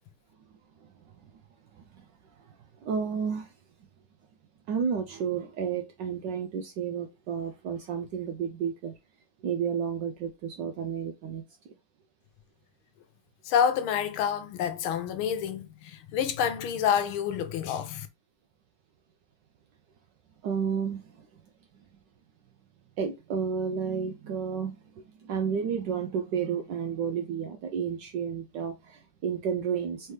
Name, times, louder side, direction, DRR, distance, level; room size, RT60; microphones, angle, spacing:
voice 1, 0.8-1.3 1.7-3.5 4.7-9.0 9.4-11.7 20.4-21.4 23.0-30.1, right 7 dB, 75° right, 1.0 m, -32 dB
voice 2, 13.4-18.1, left 8 dB, 75° left, 1.5 m, -28 dB
4.5 x 3.3 x 3.2 m
omnidirectional pair, 2.4 m